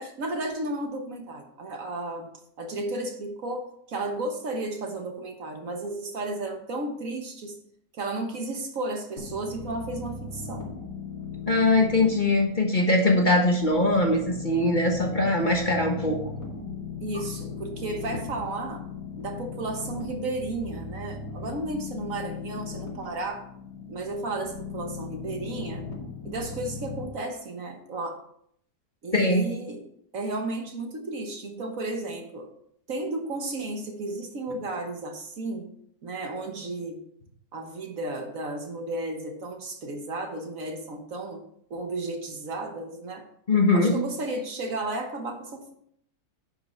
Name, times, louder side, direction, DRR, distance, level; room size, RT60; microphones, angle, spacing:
voice 1, 0.0-2.3 2.6-7.6 7.9-10.7 17.0-18.8 19.2-23.4 23.9-25.8 26.2-28.2 29.0-29.8 30.1-32.5 32.9-35.7 36.0-37.0 37.5-41.4 41.7-43.2 43.7-45.6, right 2 dB, 60° right, 4 dB, 1.5 m, -33 dB
sound 1, 9.2-27.0, left 5 dB, 85° left, 3.0 m, -38 dB
voice 2, 11.4-16.2 29.1-29.5 43.5-43.9, left 2 dB, 30° left, 1 dB, 1.4 m, -22 dB
10.5 x 5.7 x 4.3 m, 0.68 s
omnidirectional pair, 1.7 m